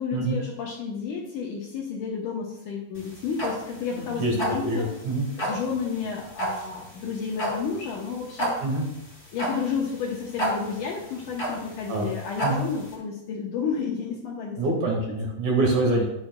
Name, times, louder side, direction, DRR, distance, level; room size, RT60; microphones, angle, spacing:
voice 1, 0.0-4.9 5.4-8.5 9.3-14.6 14.9-15.0, left 6 dB, 70° left, -2 dB, 2.0 m, -31 dB
sound 1, 3.0-12.9, right 1 dB, 25° left, 3.4 m, -31 dB
voice 2, 3.9-4.3 4.6-5.3 8.6-8.9 11.9-12.1 12.4-12.6 14.6-16.1, right 2 dB, 55° right, -1 dB, 2.9 m, -25 dB
12.0 x 9.1 x 2.2 m, 0.82 s
omnidirectional pair, 4.6 m